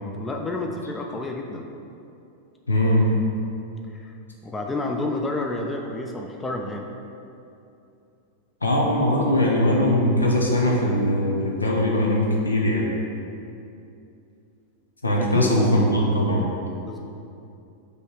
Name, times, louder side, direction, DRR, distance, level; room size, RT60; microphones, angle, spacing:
voice 1, 0.2-1.7 3.9-4.2 4.4-6.9 15.2-15.5 16.8-17.0, left 2 dB, 15° left, 2 dB, 0.5 m, -30 dB
voice 2, 2.7-3.1 8.6-12.9 15.0-16.4, left 1 dB, 75° left, -2 dB, 0.9 m, -20 dB
5.3 x 3.3 x 5.6 m, 2.6 s
figure-of-eight pair, 90°, 0 cm